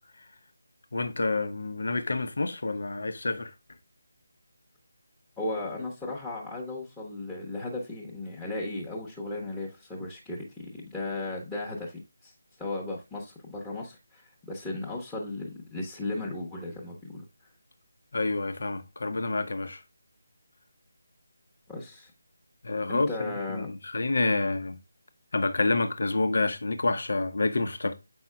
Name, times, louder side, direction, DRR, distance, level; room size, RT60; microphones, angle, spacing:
voice 1, 0.9-3.5 18.1-19.8 22.6-23.1 23.5-24.8 25.3-27.9, left 3 dB, 55° left, 0.9 m, -28 dB
voice 2, 5.4-12.3 12.6-17.2 21.7-22.1 22.9-23.7, left 2 dB, 5° left, 1.1 m, -36 dB
7.9 x 5.4 x 2.3 m
figure-of-eight pair, 155°, 0 cm